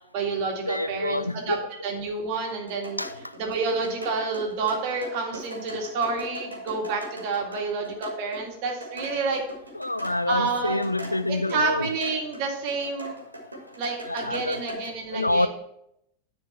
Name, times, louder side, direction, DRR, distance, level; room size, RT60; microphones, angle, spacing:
voice 1, 0.1-1.6 1.8-3.0 3.4-9.4 10.3-10.8 11.3-13.2 13.8-15.5, right 4 dB, 45° right, 1 dB, 2.1 m, -29 dB
voice 2, 0.6-1.6 3.0-3.1 9.7-11.9 14.0-14.6 15.1-15.5, left 2 dB, 85° left, 14 dB, 0.3 m, -27 dB
sound 1, 2.5-12.4 12.7-14.8, equal, 80° right, 1.8 m, -39 dB
9.9 x 4.5 x 5.6 m, 0.78 s
figure-of-eight pair, 90°, 0 cm